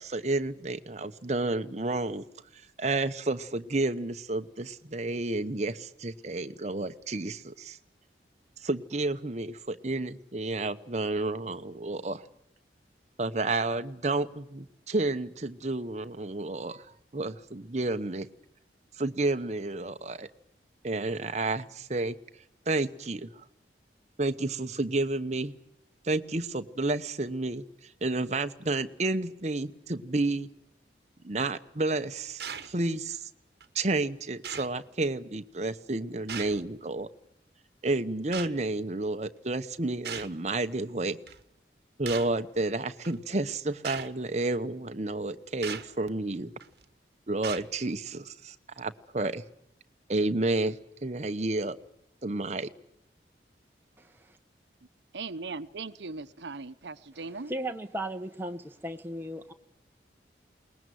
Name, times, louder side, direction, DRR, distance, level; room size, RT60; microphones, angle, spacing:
voice 1, 0.0-2.2 2.8-7.8 8.6-12.2 13.2-16.8 17.1-18.3 19.0-20.3 20.8-22.2 22.7-23.3 24.2-25.5 26.0-27.6 28.0-30.5 31.2-33.3 33.7-37.1 37.8-41.2 42.0-46.5 47.3-49.4 50.1-51.8 52.2-52.7, right 2 dB, 40° right, 1.0 m, -31 dB
sound 1, 32.4-32.8 33.6-33.7 34.4-34.8 36.3-36.7 38.3-38.5 40.0-40.4 41.3-41.4 42.1-42.4 43.0-43.1 43.8-44.1 45.6-45.9 46.6-46.8 47.4-47.7, right 7 dB, 60° right, 1.3 m, -38 dB
voice 2, 54.0-54.4 57.5-59.5, right 1 dB, 10° right, 1.2 m, -36 dB
voice 3, 55.1-57.5, right 3 dB, 80° right, 0.9 m, -39 dB
22.0 x 20.0 x 9.3 m
head